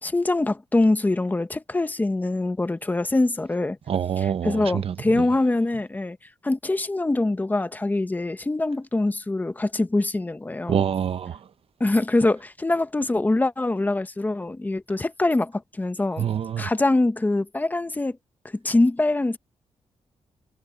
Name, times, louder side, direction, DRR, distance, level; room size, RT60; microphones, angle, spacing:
voice 1, 0.0-3.8 4.4-6.2 6.4-10.8 11.8-16.3 16.6-18.2 18.6-19.4, left 2 dB, 15° left, 0.8 m, -24 dB
voice 2, 3.9-5.3 10.7-11.4 16.2-16.7, right 8 dB, 60° right, 0.8 m, -26 dB
wide cardioid pair, 140°, 11 cm